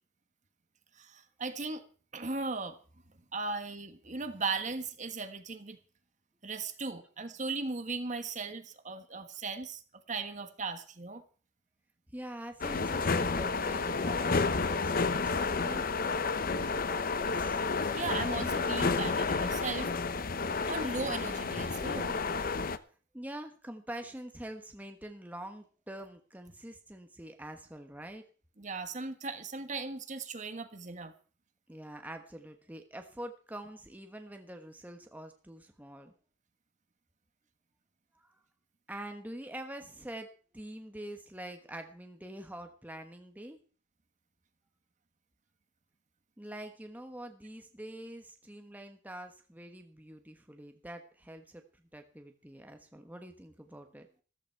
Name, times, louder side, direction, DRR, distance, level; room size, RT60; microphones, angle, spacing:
voice 1, 1.0-1.8 2.1-2.8 3.3-5.8 6.4-9.8 10.1-11.2 17.9-19.9 20.7-22.2 28.6-31.1, right 4 dB, 40° right, 8 dB, 1.5 m, -37 dB
voice 2, 12.1-16.0 16.4-17.6 23.1-28.2 31.7-36.1 38.1-38.4 38.9-40.3 40.5-43.6 46.4-54.1, right 1 dB, 10° right, 5 dB, 1.2 m, -45 dB
sound 1, 12.6-22.8, left 4 dB, 50° left, 0.8 m, -31 dB
14.0 x 14.0 x 4.6 m, 0.40 s
head